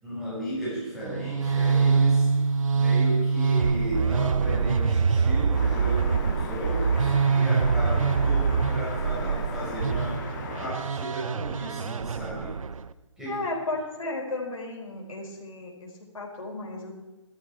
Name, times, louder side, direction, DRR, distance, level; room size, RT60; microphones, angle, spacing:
voice 1, 0.0-2.3 2.7-12.6 13.2-13.3, right 1 dB, ahead, -10 dB, 6.0 m, -35 dB
sound 1, 1.0-12.9, right 5 dB, 85° right, 0.7 m, -24 dB
sound 2, 1.4-10.2, right 2 dB, 60° right, 4.7 m, -52 dB
sound 3, 5.5-10.7, left 4 dB, 35° left, 2.3 m, -38 dB
voice 2, 13.3-16.9, left 2 dB, 90° left, -3 dB, 4.3 m, -34 dB
16.0 x 13.5 x 4.7 m, 1.1 s
hypercardioid pair, 165°, 17 cm